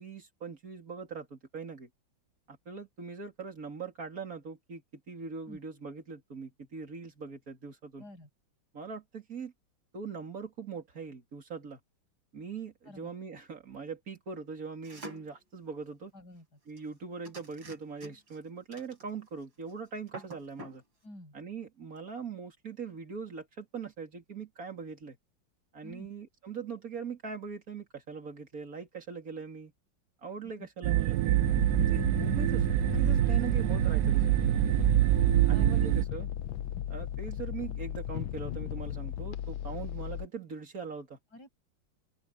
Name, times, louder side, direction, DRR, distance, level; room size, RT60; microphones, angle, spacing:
voice 1, 0.0-1.9 2.5-8.0 8.7-9.5 9.9-11.8 12.3-16.1 16.7-20.8 21.3-25.2 25.7-29.7 30.2-31.4 31.8-34.4 35.5-36.3 36.9-41.2, right 5 dB, 40° right, 3.2 m, -41 dB
voice 2, 8.0-8.3 12.8-13.1 16.1-16.6 21.0-21.4 25.8-26.1 30.4-30.7 34.8-35.7 41.3-41.5, left 1 dB, 50° left, 8.5 m, -50 dB
sound 1, 14.8-15.4 16.8-16.9 17.2-18.4 18.7-19.4 19.7-19.8 20.1-20.8, right 1 dB, 65° right, 7.4 m, -47 dB
sound 2, 30.8-36.0, right 14 dB, 85° right, 0.8 m, -25 dB
sound 3, 31.4-40.3, left 11 dB, 75° left, 1.6 m, -36 dB
open air
omnidirectional pair, 2.3 m